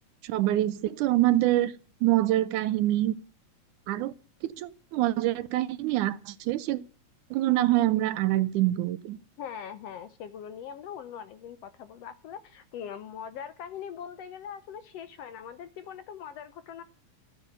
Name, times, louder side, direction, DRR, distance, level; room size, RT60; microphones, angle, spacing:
voice 1, 0.2-1.7 2.0-3.1 3.9-4.1 4.4-6.8 7.3-9.2, right 15 dB, 80° right, 15 dB, 2.2 m, -25 dB
voice 2, 9.4-16.8, left 8 dB, 70° left, 12 dB, 1.6 m, -41 dB
13.0 x 9.1 x 8.0 m, 0.39 s
omnidirectional pair, 3.5 m